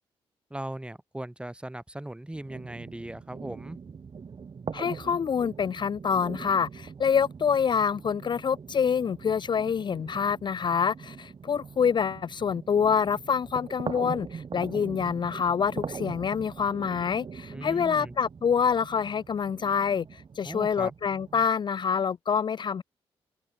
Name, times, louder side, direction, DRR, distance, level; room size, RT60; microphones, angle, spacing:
voice 1, 0.5-3.8 17.5-18.2 20.4-20.9, right 1 dB, 10° right, 5.1 m, -38 dB
sound 1, 2.3-21.5, right 6 dB, 50° right, 2.6 m, -42 dB
voice 2, 4.7-22.8, left 6 dB, 45° left, 0.5 m, -26 dB
cardioid pair, 75°, 11 cm